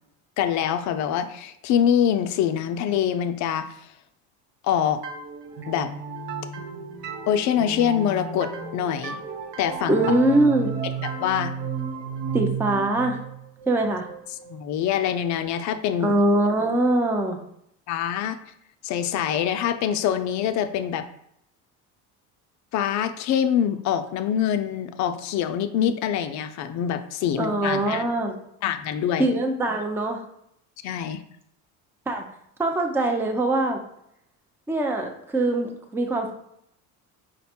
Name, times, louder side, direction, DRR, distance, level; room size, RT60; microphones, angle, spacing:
voice 1, 0.4-3.8 4.6-5.0 5.7-5.9 7.3-9.2 9.6-10.1 11.0-11.5 14.5-16.1 17.9-18.4 18.8-21.1 22.7-28.0 28.6-29.3 30.8-31.2, left 9 dB, 55° left, 9 dB, 0.4 m, -25 dB
sound 1, 5.0-14.6, right 6 dB, 85° right, 0.8 m, -33 dB
voice 2, 9.9-10.7 12.3-13.2 13.7-14.1 16.0-17.4 27.4-28.3 29.2-30.2 32.1-32.2 32.6-33.8 34.7-36.3, right 2 dB, 5° right, 3 dB, 0.4 m, -22 dB
5.0 x 2.2 x 4.2 m, 0.74 s
supercardioid pair, 110°, 35 cm